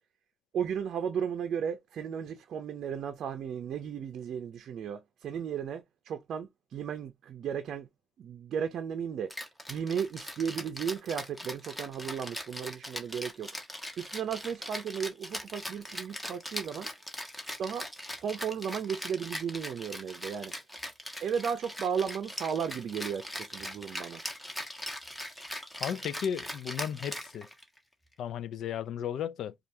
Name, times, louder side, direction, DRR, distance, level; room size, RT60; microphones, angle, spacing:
voice 1, 0.5-7.9 8.2-9.4 9.7-13.5 14.0-16.9 17.6-17.9 18.2-20.5 21.2-24.2, right 7 dB, 65° right, 0.5 m, -35 dB
Rattle (instrument), 9.3-27.8, equal, 10° left, 1.2 m, -40 dB
voice 2, 25.8-27.5 28.2-29.5, left 9 dB, 75° left, 0.4 m, -34 dB
4.5 x 2.4 x 2.7 m
cardioid pair, 90°, 0 cm